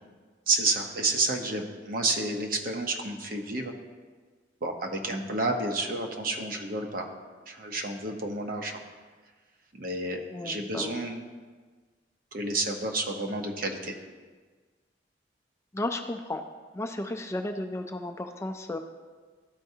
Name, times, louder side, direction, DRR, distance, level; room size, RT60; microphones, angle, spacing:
voice 1, 0.5-3.7 4.6-7.1 7.5-8.8 9.7-11.2 12.3-13.9, right 2 dB, 55° right, 3 dB, 0.8 m, -30 dB
voice 2, 10.3-11.0 15.7-16.4 16.7-18.8, left 1 dB, 15° left, 5 dB, 0.4 m, -34 dB
13.0 x 4.5 x 2.8 m, 1.4 s
head